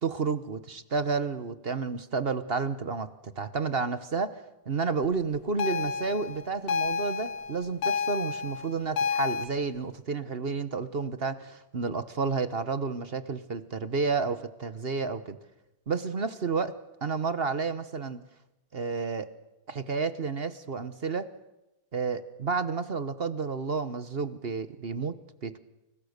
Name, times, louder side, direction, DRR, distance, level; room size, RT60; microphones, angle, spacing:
voice 1, 0.0-15.4 15.9-16.7 17.0-18.2 18.7-19.3 19.7-21.3 21.9-25.1 25.4-25.6, right 4 dB, 40° right, 12 dB, 0.8 m, -31 dB
sound 1, 5.6-9.5, left 5 dB, 75° left, 2.5 m, -30 dB
30.0 x 29.0 x 6.7 m, 0.96 s
omnidirectional pair, 2.4 m